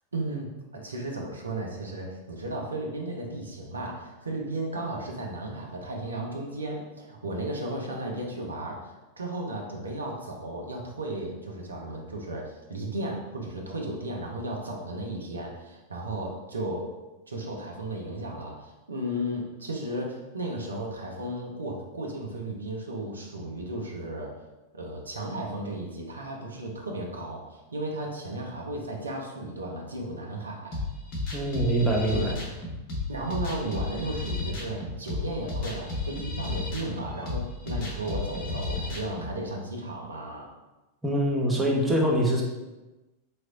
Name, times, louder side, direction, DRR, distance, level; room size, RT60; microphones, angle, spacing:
voice 1, 0.1-0.5 0.8-16.9 17.3-24.3 24.7-30.8 32.1-32.4 33.1-40.5, right 1 dB, 75° right, 0 dB, 0.7 m, -34 dB
sound 1, 30.7-39.3, left 3 dB, 45° left, 0.9 m, -33 dB
voice 2, 31.3-32.3 41.0-42.4, right 1 dB, 5° right, -3 dB, 0.8 m, -24 dB
4.2 x 3.1 x 2.5 m, 1.1 s
figure-of-eight pair, 90°, 0 cm